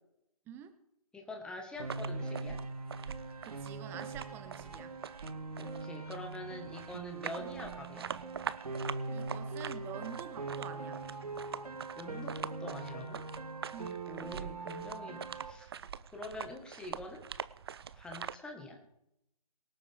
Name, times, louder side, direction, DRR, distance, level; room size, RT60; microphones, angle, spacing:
voice 1, 1.1-2.6 5.6-8.1 11.9-13.3 14.1-15.7 16.1-17.3 17.9-18.8, left 2 dB, 5° left, 2 dB, 1.7 m, -45 dB
sound 1, 1.8-18.4, right 7 dB, 40° right, 0.5 m, -45 dB
Piano, 1.8-15.5, right 3 dB, 75° right, 2.0 m, -42 dB
voice 2, 3.4-5.0 9.1-11.0 13.7-14.1, right 9 dB, 10° right, 10 dB, 0.8 m, -47 dB
23.5 x 8.4 x 3.7 m, 0.83 s
figure-of-eight pair, 145°, 19 cm